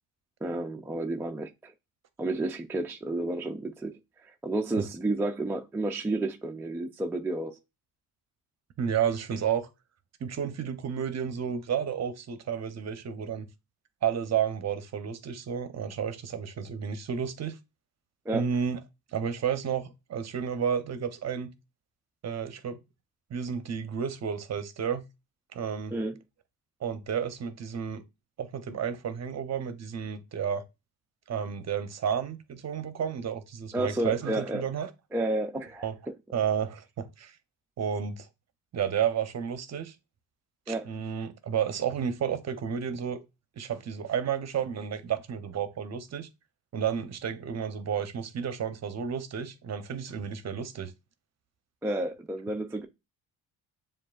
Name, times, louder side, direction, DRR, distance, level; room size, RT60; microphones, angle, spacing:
voice 1, 0.4-1.7 2.2-4.0 4.3-7.6 18.3-18.5 25.9-26.2 33.7-34.6 35.1-35.9 40.7-40.9 51.8-52.9, right 2 dB, 5° right, 0.3 m, -31 dB
voice 2, 8.8-9.7 10.2-13.5 14.0-17.6 18.3-18.8 19.1-21.5 22.2-22.8 23.3-25.0 25.5-25.9 26.8-28.0 28.4-30.6 31.3-34.9 35.8-36.0 36.3-37.3 37.8-38.3 38.7-39.9 40.7-43.2 43.6-46.3 46.7-50.9, right 8 dB, 45° right, 0.7 m, -31 dB
7.2 x 2.5 x 2.3 m
cardioid pair, 105°, 38 cm